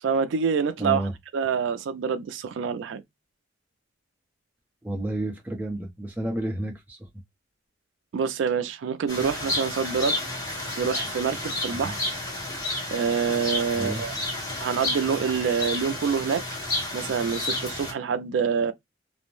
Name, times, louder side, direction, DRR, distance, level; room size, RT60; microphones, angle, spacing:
voice 1, 0.0-3.0 8.1-10.2 10.8-12.0 12.9-14.1 14.6-16.4 16.9-18.7, right 6 dB, 70° right, 0.3 m, -26 dB
voice 2, 0.8-1.1 4.8-7.1 11.7-12.0 13.7-14.0, right 1 dB, 10° right, 0.6 m, -31 dB
sound 1, 9.1-17.9, left 1 dB, 20° left, 1.4 m, -31 dB
2.5 x 2.1 x 3.0 m
head